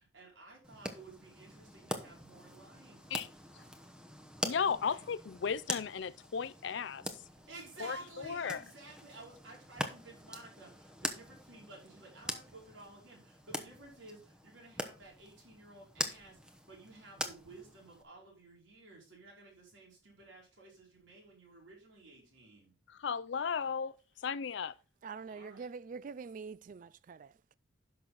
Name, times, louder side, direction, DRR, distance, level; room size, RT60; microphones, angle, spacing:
voice 1, 0.0-3.1 3.6-3.7 4.6-5.1 7.5-22.7 25.3-25.7, right 2 dB, 75° right, 5.0 m, -53 dB
sound 1, 0.6-18.0, equal, 5° right, 0.9 m, -44 dB
voice 2, 4.4-7.0 7.8-8.6 22.9-24.7, left 6 dB, 65° left, 0.4 m, -35 dB
voice 3, 25.0-27.5, right 5 dB, 45° right, 0.3 m, -45 dB
11.0 x 6.1 x 4.0 m
head